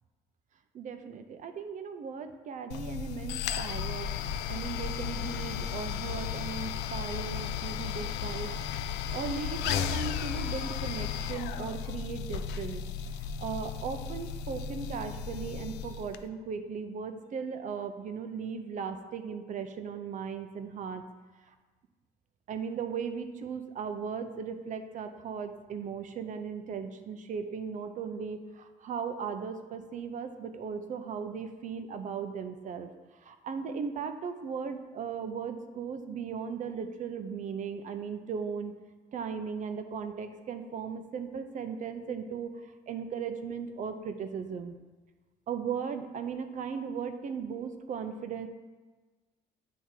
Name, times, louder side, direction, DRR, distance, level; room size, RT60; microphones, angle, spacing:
voice 1, 0.7-4.1 4.5-8.6 9.1-12.8 13.2-21.0 22.5-32.9 33.2-38.7 39.1-42.5 42.9-44.7 45.5-48.5, right 6 dB, 50° right, 8 dB, 0.6 m, -37 dB
sound 1, 2.7-16.2, left 8 dB, 85° left, 0.4 m, -35 dB
8.3 x 3.5 x 4.4 m, 1.3 s
cardioid pair, 110°, 17 cm